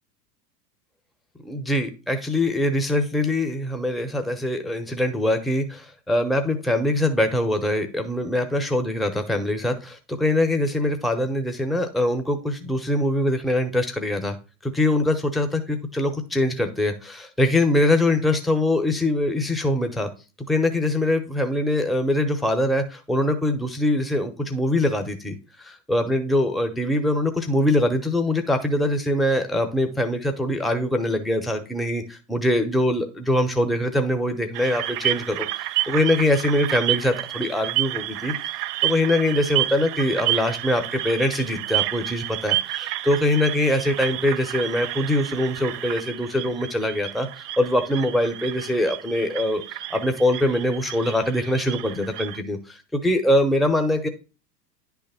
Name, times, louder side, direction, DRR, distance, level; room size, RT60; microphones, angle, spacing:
voice 1, 1.4-14.4 14.6-20.1 20.5-38.3 38.8-54.1, left 1 dB, ahead, 6 dB, 0.8 m, -23 dB
sound 1, 34.5-52.4, right 15 dB, 70° right, 0.6 m, -30 dB
10.0 x 3.5 x 5.7 m, 0.33 s
hypercardioid pair, 90°, 50 cm